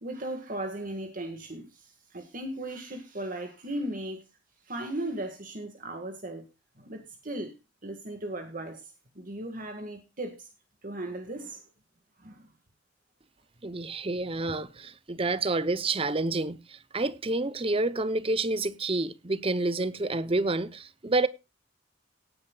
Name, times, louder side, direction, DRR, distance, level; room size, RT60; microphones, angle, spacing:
voice 1, 0.0-4.2 4.7-6.5 6.8-7.5 7.8-8.9 9.2-10.5 10.8-11.6 12.2-12.5, right 1 dB, 45° right, 2.0 m, -37 dB
voice 2, 13.6-21.3, right 2 dB, 30° right, 0.8 m, -29 dB
18.0 x 10.0 x 2.4 m
head